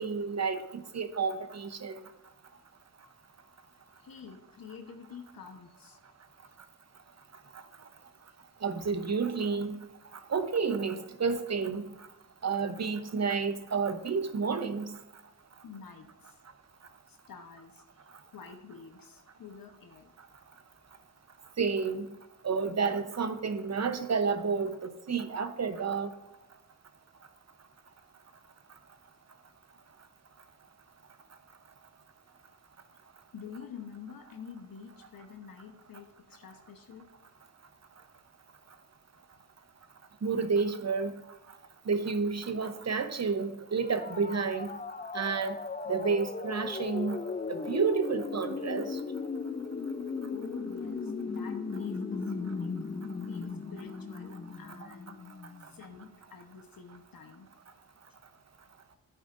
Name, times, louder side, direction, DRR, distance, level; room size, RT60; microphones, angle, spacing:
voice 1, 0.0-2.0 8.6-9.8 10.3-11.8 12.4-14.9 21.6-22.1 22.4-26.1 40.2-41.1 41.9-44.7 45.1-45.6 45.9-47.2 47.5-49.0, right 5 dB, 45° right, 9 dB, 0.9 m, -30 dB
voice 2, 4.0-6.0 15.6-16.4 17.1-17.8 18.3-20.1 33.3-37.0 50.3-52.7 53.3-55.2 55.7-57.5, left 6 dB, 70° left, 4 dB, 1.0 m, -48 dB
sound 1, 43.8-55.6, left 4 dB, 25° left, 0.4 m, -37 dB
11.5 x 8.9 x 2.6 m, 0.95 s
wide cardioid pair, 85°, 35 cm